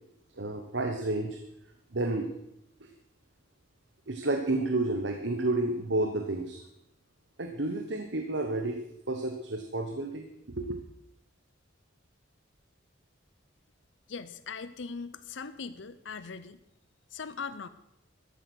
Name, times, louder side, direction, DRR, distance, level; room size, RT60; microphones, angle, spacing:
voice 1, 0.4-1.4 1.9-2.3 2.8-2.9 4.1-6.6 7.4-8.8 9.1-10.8, right 2 dB, 60° right, 5 dB, 1.2 m, -31 dB
voice 2, 14.1-16.6 17.1-17.7, left 5 dB, 70° left, 13 dB, 0.7 m, -40 dB
14.0 x 10.5 x 6.3 m, 0.82 s
head